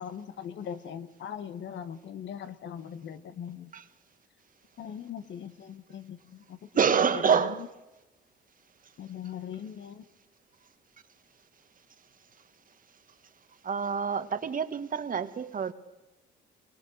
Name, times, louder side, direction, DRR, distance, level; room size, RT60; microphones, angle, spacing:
voice 1, 0.0-3.7 4.8-7.6 9.0-10.0, left 8 dB, 65° left, 1.5 m, -40 dB
voice 2, 6.7-7.6 13.6-15.7, right 7 dB, 45° right, 1.4 m, -27 dB
24.0 x 21.5 x 6.6 m
cardioid pair, 90°, 20 cm